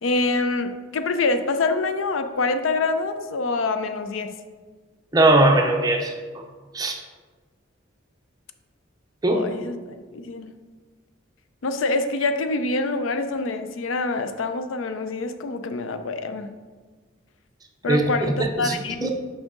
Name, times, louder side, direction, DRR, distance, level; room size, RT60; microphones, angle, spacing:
voice 1, 0.0-4.3 9.3-9.8 10.1-10.5 11.6-16.5 17.8-19.1, left 3 dB, 90° left, 9 dB, 0.5 m, -25 dB
voice 2, 5.1-6.1 6.7-7.0 9.2-9.4 17.9-18.0 18.4-19.1, right 2 dB, 20° right, 3 dB, 0.5 m, -19 dB
6.2 x 4.9 x 3.8 m, 1.4 s
head